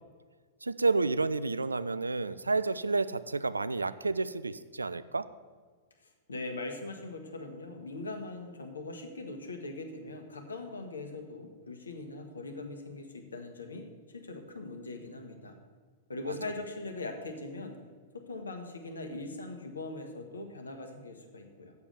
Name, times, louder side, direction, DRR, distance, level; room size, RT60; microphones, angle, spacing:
voice 1, 0.6-5.2 16.3-16.4, right 3 dB, 80° right, 14 dB, 0.4 m, -30 dB
voice 2, 6.3-13.8 14.1-15.6 16.1-17.8 18.1-21.7, left 2 dB, 75° left, 5 dB, 1.3 m, -41 dB
7.2 x 6.9 x 7.0 m, 1.5 s
figure-of-eight pair, 100°, 0 cm